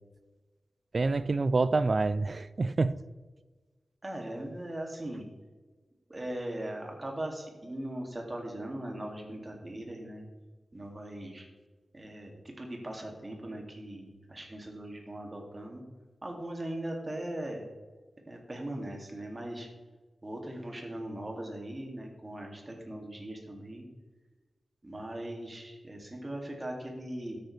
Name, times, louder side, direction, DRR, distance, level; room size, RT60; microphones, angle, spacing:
voice 1, 0.9-3.0, right 3 dB, 45° right, 0.4 m, -27 dB
voice 2, 4.0-5.2 6.1-10.3 10.7-11.5 11.9-15.8 16.2-17.6 18.3-19.7 20.2-23.8 24.8-27.4, right 1 dB, 25° right, 2.4 m, -39 dB
13.0 x 8.7 x 3.3 m
wide cardioid pair, 95°, 0 cm